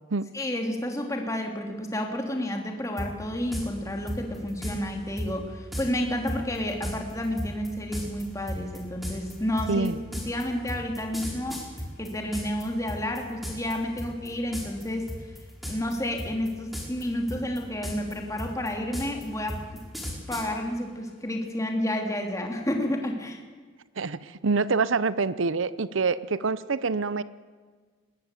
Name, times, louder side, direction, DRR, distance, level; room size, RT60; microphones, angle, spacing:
voice 1, 0.3-9.9 10.2-11.6 12.0-15.3 15.7-19.8 20.3-23.4, left 1 dB, 15° left, 3 dB, 2.8 m, -30 dB
sound 1, 3.0-3.1 3.5-3.7 4.1-4.8 5.2-5.3 5.7-5.9 6.3-12.6 12.9-13.7 14.0-14.3 14.5-14.8 15.1-15.9 16.2-17.0 17.3-20.5, equal, ahead, 4.6 m, -34 dB
voice 2, 9.7-10.0 24.0-27.2, right 4 dB, 80° right, 16 dB, 0.7 m, -26 dB
20.5 x 19.5 x 8.3 m, 1.5 s
head